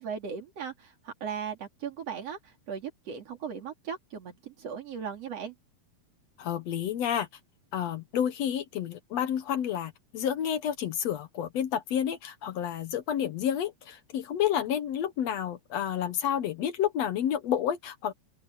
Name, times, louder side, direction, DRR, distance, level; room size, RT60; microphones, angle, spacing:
voice 1, 0.0-5.6, right 7 dB, 45° right, 3.6 m, -38 dB
voice 2, 6.4-7.3 7.7-18.1, left 9 dB, 65° left, 1.7 m, -30 dB
open air
omnidirectional pair, 4.2 m